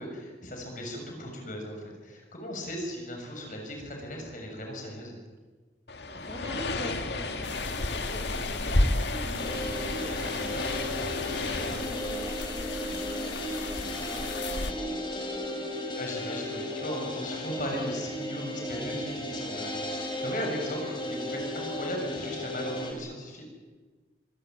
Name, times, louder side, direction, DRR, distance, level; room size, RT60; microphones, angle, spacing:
voice 1, 0.0-5.2 10.5-10.9 14.0-14.2 16.0-23.5, equal, 45° left, 2 dB, 6.8 m, -37 dB
sound 1, 5.9-13.3, left 3 dB, 75° left, 2.1 m, -35 dB
voice 2, 6.1-15.9, right 1 dB, 15° right, 1 dB, 2.5 m, -45 dB
sound 2, 7.4-14.7, left 2 dB, 90° left, 1.5 m, -33 dB
sound 3, 9.4-22.9, left 1 dB, 25° left, 3.9 m, -35 dB
25.0 x 16.5 x 9.4 m, 1.3 s
head